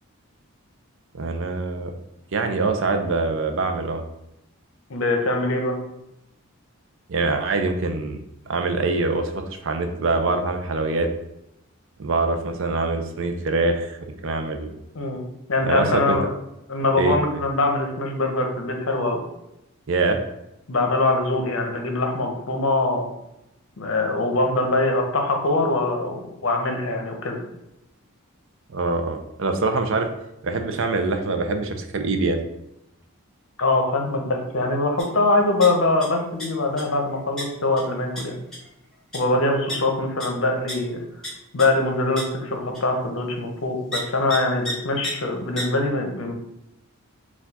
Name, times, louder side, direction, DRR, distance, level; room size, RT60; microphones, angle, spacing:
voice 1, 1.1-1.9 2.3-4.0 7.1-8.2 8.5-11.1 12.0-14.7 15.6-16.2 17.0-17.2 19.9-20.2 28.7-30.1 30.4-32.4, right 3 dB, 60° right, 6 dB, 0.5 m, -24 dB
voice 2, 4.9-5.8 14.9-15.2 15.5-16.3 16.7-19.2 20.7-23.1 23.8-27.4 33.6-38.4 39.1-41.0 41.5-46.3, left 2 dB, 60° left, 3 dB, 0.7 m, -23 dB
sound 1, 35.0-35.1 35.4-36.0 36.4-36.8 37.4-37.5 37.8-37.9 38.1-38.2 38.5-38.7 39.1-39.2 39.7-39.8 40.2-40.3 40.7-40.8 41.2-41.3 41.6-41.7 42.2-42.3 42.7-42.8 43.9-44.0 44.3-44.4 44.6-44.7 45.0-45.1 45.6-45.7, equal, ahead, 1.3 m, -30 dB
4.4 x 2.4 x 4.0 m, 0.87 s
head